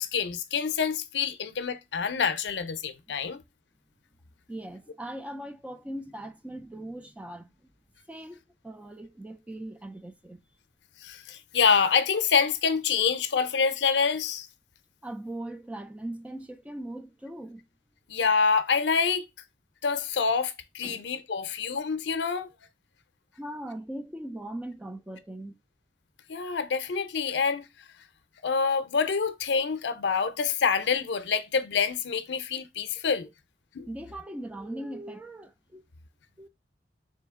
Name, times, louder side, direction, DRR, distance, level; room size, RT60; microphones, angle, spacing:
voice 1, 0.0-3.4 11.0-14.5 18.1-19.2 19.8-22.5 26.3-27.7 28.4-33.3 33.7-33.9, left 5 dB, 85° left, 0.5 m, -26 dB
voice 2, 4.5-7.5 8.1-10.4 15.0-17.6 20.8-21.1 23.3-25.6 33.9-35.8 36.4-36.5, right 1 dB, 10° right, 0.3 m, -40 dB
3.8 x 2.8 x 3.5 m
head